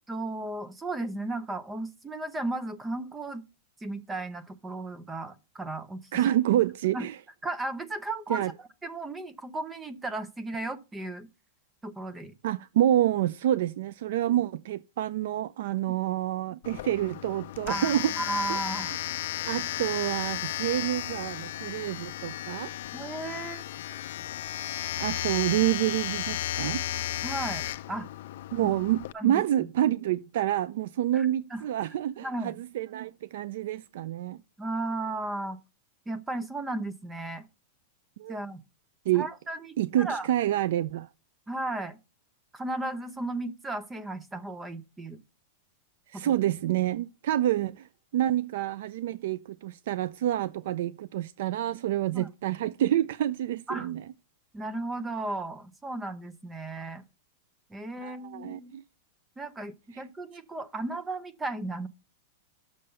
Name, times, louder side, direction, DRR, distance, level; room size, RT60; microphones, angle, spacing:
voice 1, 0.1-3.4 3.8-6.1 6.9-7.1 7.4-8.4 8.8-11.3 11.8-12.3 17.7-18.9 22.9-23.6 27.2-28.1 29.1-29.7 31.1-31.6 32.2-32.5 34.6-35.6 36.1-37.5 38.3-38.6 39.1-40.3 41.5-42.0 42.5-45.2 46.1-46.4 52.1-52.3 53.7-53.9 54.5-57.0 57.7-58.8 59.4-61.9, right 2 dB, 10° right, 0.5 m, -35 dB
voice 2, 6.1-7.2 8.3-8.5 12.4-18.1 18.5-18.6 18.9-19.0 19.4-22.7 25.0-26.8 28.5-34.4 38.2-38.4 39.1-39.3 39.8-41.1 46.1-47.9 48.1-54.0 58.0-58.8, right 12 dB, 60° right, 0.3 m, -28 dB
Domestic sounds home sounds, 16.6-29.1, left 13 dB, 55° left, 0.4 m, -34 dB
6.9 x 6.4 x 5.5 m
supercardioid pair, 175°, 0 cm